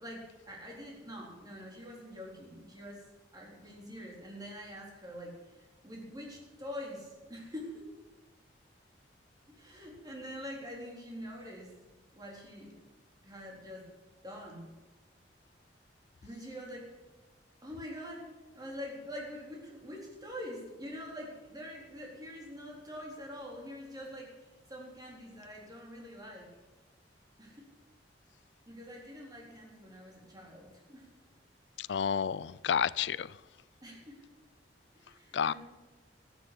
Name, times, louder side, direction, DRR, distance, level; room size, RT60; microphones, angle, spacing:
voice 1, 0.0-3.0 3.3-7.8 9.5-11.7 12.1-12.8 13.2-13.9 14.2-14.7 16.2-16.9 17.6-26.5 27.4-27.7 28.7-31.1 33.8-34.2 34.9-35.5, equal, 20° right, 3.9 m, -45 dB
voice 2, 31.8-33.3 35.3-35.5, left 7 dB, 70° left, 0.4 m, -30 dB
13.5 x 9.4 x 8.5 m
head